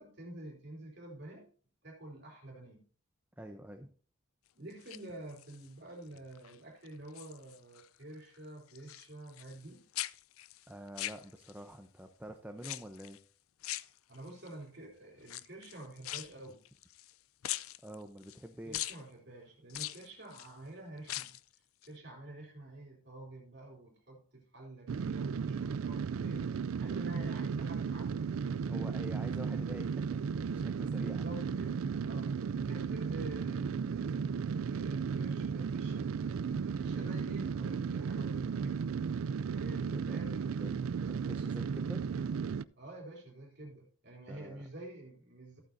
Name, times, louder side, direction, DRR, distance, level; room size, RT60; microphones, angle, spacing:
voice 1, 0.0-1.5 1.8-2.8 4.5-9.8 14.1-16.6 18.6-21.4 21.8-26.5 26.8-29.0 30.9-36.1 36.6-38.9 39.4-40.7 42.8-45.6, right 1 dB, 55° right, -1 dB, 3.6 m, -48 dB
voice 2, 3.4-3.9 10.7-13.2 17.8-18.8 28.7-31.2 39.9-40.8 41.0-42.0 44.3-44.6, equal, 10° right, 5 dB, 0.7 m, -47 dB
sound 1, 4.7-5.7 6.2-6.6 6.9-9.7 9.9-11.7 12.6-13.2 13.6-14.5 15.2-17.1 17.4-18.4 18.7-19.0 19.7-20.5 21.0-21.5 21.8-21.9, left 15 dB, 85° left, 0.4 m, -42 dB
sound 2, 24.9-42.6, right 6 dB, 80° right, 0.4 m, -35 dB
14.0 x 8.8 x 2.6 m, 0.41 s
head